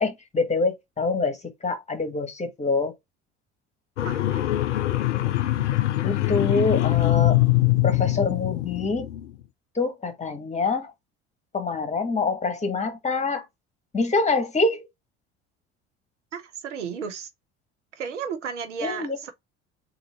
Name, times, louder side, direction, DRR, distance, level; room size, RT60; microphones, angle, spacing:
voice 1, 0.0-2.9 6.0-7.4 7.8-9.0 9.7-10.9 11.5-13.4 13.9-14.9 18.8-19.2, left 3 dB, 20° left, 1.4 m, -25 dB
sound 1, 4.0-9.3, left 16 dB, 80° left, 0.5 m, -23 dB
voice 2, 4.0-4.4 16.3-17.3 18.0-19.3, right 7 dB, 80° right, 0.7 m, -33 dB
3.8 x 2.8 x 4.1 m
figure-of-eight pair, 60°, 36 cm